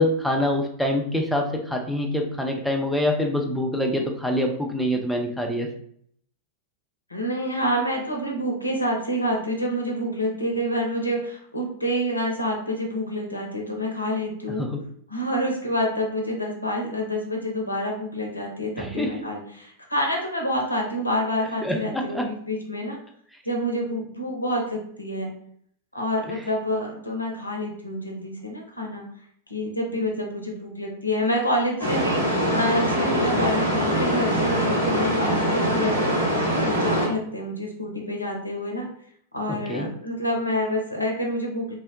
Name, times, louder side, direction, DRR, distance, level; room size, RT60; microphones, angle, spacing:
voice 1, 0.0-5.7 14.6-14.8 18.8-19.1 21.6-22.2 39.5-39.9, left 1 dB, ahead, 1 dB, 0.4 m, -25 dB
voice 2, 7.1-14.7 15.1-23.0 23.5-25.3 25.9-29.0 29.5-36.0 36.6-38.9 39.3-41.7, equal, 85° left, 1 dB, 0.5 m, -27 dB
sound 1, 31.8-37.1, equal, 85° right, 1.2 m, -23 dB
2.5 x 2.0 x 2.6 m, 0.64 s
figure-of-eight pair, 90°, 0 cm